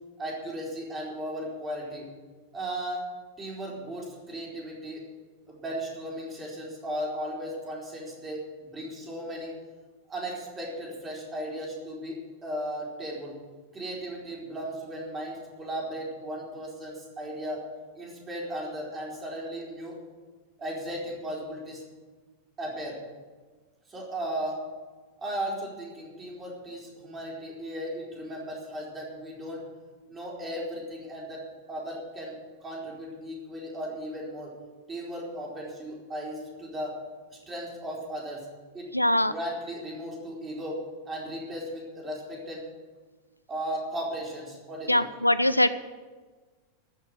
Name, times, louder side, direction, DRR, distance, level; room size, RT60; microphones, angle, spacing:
voice 1, 0.2-2.1 2.5-3.0 3.4-5.0 5.5-9.5 10.1-13.4 13.7-17.7 17.9-20.0 20.6-21.8 22.6-23.0 23.9-24.6 25.2-29.6 30.1-31.4 31.7-32.4 32.6-34.5 34.9-37.0 37.3-38.5 38.7-42.6 43.5-45.0, equal, 20° right, -3 dB, 4.4 m, -36 dB
voice 2, 38.9-39.3 44.9-45.7, left 1 dB, 85° left, 14 dB, 0.4 m, -22 dB
14.0 x 6.5 x 9.1 m, 1.4 s
figure-of-eight pair, 90°, 0 cm